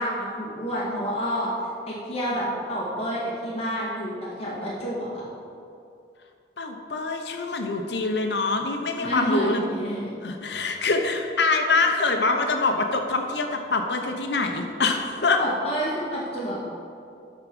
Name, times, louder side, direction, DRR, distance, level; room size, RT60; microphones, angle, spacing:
voice 1, 0.0-1.5 1.9-5.2 9.0-10.1 15.4-16.6, equal, 35° left, -6 dB, 2.0 m, -29 dB
voice 2, 6.6-9.6 10.2-15.4, left 3 dB, 75° left, 4 dB, 0.8 m, -25 dB
12.0 x 4.6 x 5.3 m, 2.5 s
head